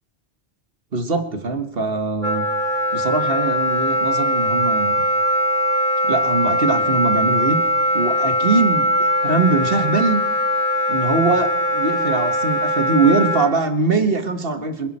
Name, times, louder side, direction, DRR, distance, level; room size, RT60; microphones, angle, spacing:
voice 1, 0.9-2.5 2.9-5.0 6.0-7.6 7.9-10.2 10.9-14.9, right 3 dB, 60° right, 8 dB, 1.8 m, -21 dB
Wind instrument woodwind instrument, 2.2-13.5, left 1 dB, 40° right, 6.8 m, -21 dB
26.5 x 11.0 x 4.3 m, 0.82 s
omnidirectional pair, 1.1 m